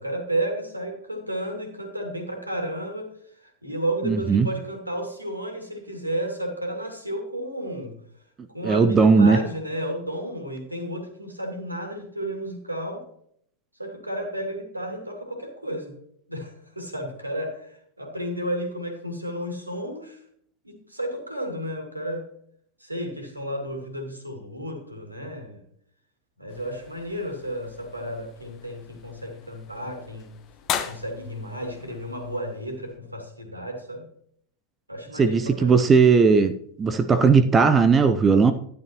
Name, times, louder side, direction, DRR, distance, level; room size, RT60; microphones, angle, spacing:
voice 1, 0.0-3.1 3.4-7.9 8.5-13.0 13.8-16.0 16.3-20.2 20.6-22.2 22.8-25.6 26.4-30.3 30.8-34.1 34.9-35.9, right 1 dB, 85° right, 3 dB, 2.3 m, -32 dB
voice 2, 4.0-4.5 8.6-9.4 35.2-36.5 36.8-38.5, right 5 dB, 20° right, 12 dB, 0.6 m, -17 dB
sound 1, 26.5-33.0, left 9 dB, 35° left, 1.1 m, -38 dB
12.0 x 10.5 x 3.0 m, 0.66 s
figure-of-eight pair, 90°, 0 cm